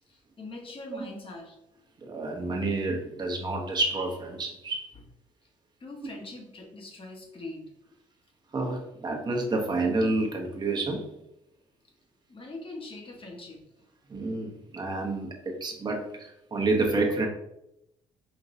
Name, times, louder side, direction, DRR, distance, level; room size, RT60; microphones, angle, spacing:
voice 1, 0.1-1.6 5.8-7.7 12.3-13.6, left 2 dB, 40° left, 1 dB, 1.2 m, -42 dB
voice 2, 2.0-4.9 8.5-11.1 14.1-17.3, right 2 dB, 30° right, 0 dB, 1.0 m, -29 dB
5.2 x 2.8 x 2.7 m, 0.82 s
supercardioid pair, 65°, 15 cm